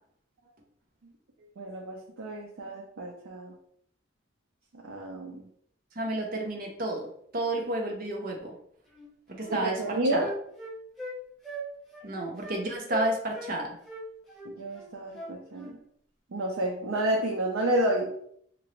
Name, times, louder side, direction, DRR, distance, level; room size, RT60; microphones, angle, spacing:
voice 1, 1.6-3.5 4.7-5.5 9.5-10.3 14.4-15.8 16.3-18.1, right 1 dB, 80° right, -1 dB, 0.5 m, -30 dB
voice 2, 6.0-8.5 9.3-10.2 12.0-13.7, right 2 dB, 45° right, 0 dB, 0.7 m, -31 dB
Wind instrument woodwind instrument, 8.9-9.1 9.4-11.2 11.4-11.7 11.9-12.1 12.4-12.6 12.9-13.5 13.9-15.7, left 1 dB, ahead, 0.7 m, -39 dB
2.9 x 2.6 x 3.1 m, 0.67 s
head